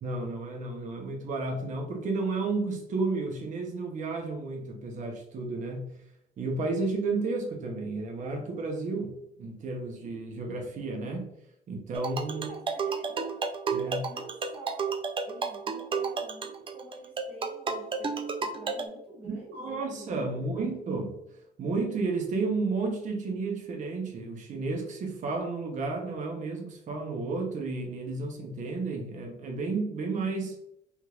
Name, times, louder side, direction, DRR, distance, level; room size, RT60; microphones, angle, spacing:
voice 1, 0.0-5.9 6.4-11.3 11.7-12.5 13.7-14.1 19.2-21.2 21.6-30.6, right 3 dB, 45° right, 2 dB, 0.8 m, -32 dB
sound 1, 11.9-18.9, right 5 dB, 30° right, 0.4 m, -32 dB
voice 2, 12.2-13.4 13.8-15.0 15.2-20.7, right 2 dB, 10° right, -8 dB, 1.4 m, -47 dB
3.6 x 3.0 x 2.3 m, 0.79 s
cardioid pair, 110°, 17 cm